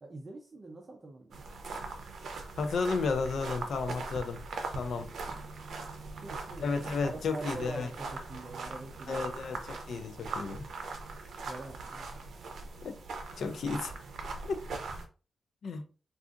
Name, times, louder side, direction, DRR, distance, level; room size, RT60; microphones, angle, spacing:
voice 1, 0.0-1.4 6.2-6.7 7.0-9.4 11.5-12.3, right 2 dB, 30° right, 0.5 m, -44 dB
sound 1, 1.3-15.1, right 3 dB, 75° right, 0.6 m, -41 dB
voice 2, 2.6-4.4 4.8-5.1 6.6-7.9 9.1-10.7 12.8-13.0 13.4-13.9 14.4-14.6 15.6-15.9, left 4 dB, 70° left, 0.5 m, -33 dB
3.7 x 2.4 x 2.5 m
wide cardioid pair, 160°, 0 cm